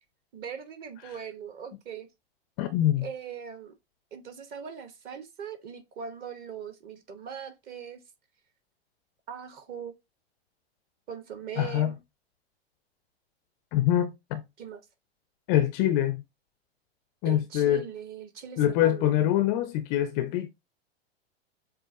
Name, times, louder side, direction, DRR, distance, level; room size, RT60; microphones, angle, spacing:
voice 1, 0.3-2.1 3.0-3.7 4.1-8.0 9.3-9.9 11.1-12.0 14.6-14.8 17.2-19.1, right 7 dB, 30° right, 1.0 m, -40 dB
voice 2, 2.6-3.1 11.6-11.9 13.7-14.4 15.5-16.2 17.2-17.8 18.6-20.5, left 12 dB, 30° left, 0.5 m, -24 dB
7.2 x 2.4 x 2.7 m
figure-of-eight pair, 100°, 32 cm